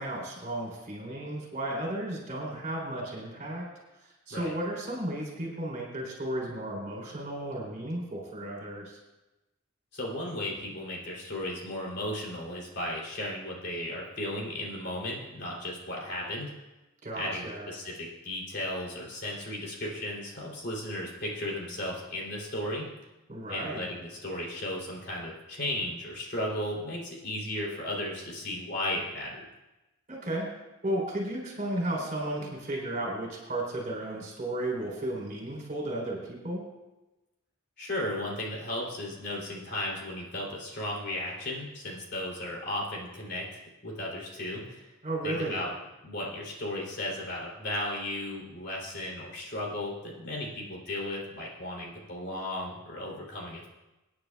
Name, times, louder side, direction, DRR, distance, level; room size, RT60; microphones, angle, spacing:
voice 1, 0.0-3.6 4.3-9.0 17.0-17.7 23.3-23.9 30.1-30.5 30.8-36.6 45.0-45.6, right 1 dB, 35° right, -1 dB, 3.5 m, -34 dB
voice 2, 9.9-16.5 17.1-22.9 23.5-29.4 37.8-44.9 45.2-45.7 46.0-53.7, left 1 dB, 50° left, -3 dB, 3.1 m, -35 dB
25.0 x 9.5 x 2.3 m, 1.0 s
head